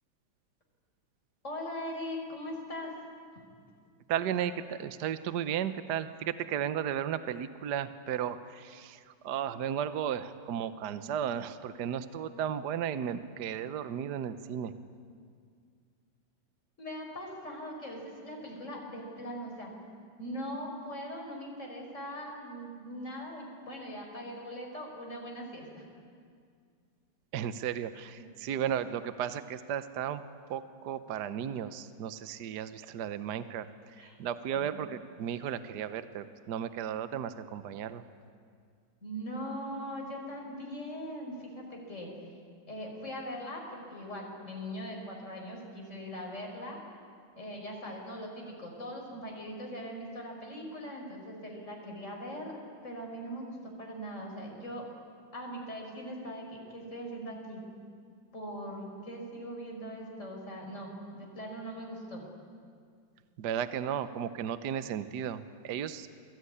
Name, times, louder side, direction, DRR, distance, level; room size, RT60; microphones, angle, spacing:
voice 1, 1.4-2.9 16.8-19.7 20.2-25.9 28.2-28.3 34.0-34.2 34.6-34.7 39.0-42.1 42.7-46.8 47.4-54.9 55.3-57.6 58.3-62.3, equal, 35° left, 0 dB, 5.7 m, -41 dB
voice 2, 4.1-14.7 27.3-30.2 30.5-38.0 63.4-66.1, right 9 dB, 65° right, 12 dB, 1.4 m, -34 dB
28.0 x 21.5 x 9.9 m, 2.1 s
omnidirectional pair, 2.1 m